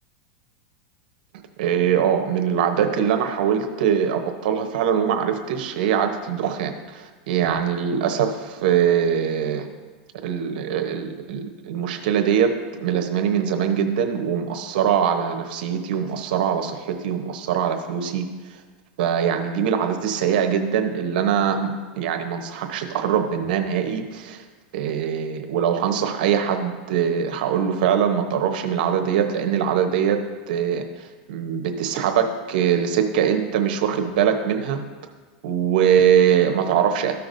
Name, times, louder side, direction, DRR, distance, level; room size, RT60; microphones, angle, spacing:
voice 1, 1.6-9.7 10.2-12.5 12.8-18.3 19.0-24.4 24.7-30.2 30.5-34.8 35.4-37.1, right 8 dB, 70° right, 5 dB, 0.9 m, -22 dB
14.0 x 5.8 x 2.6 m, 1.4 s
supercardioid pair, 140°, 5 cm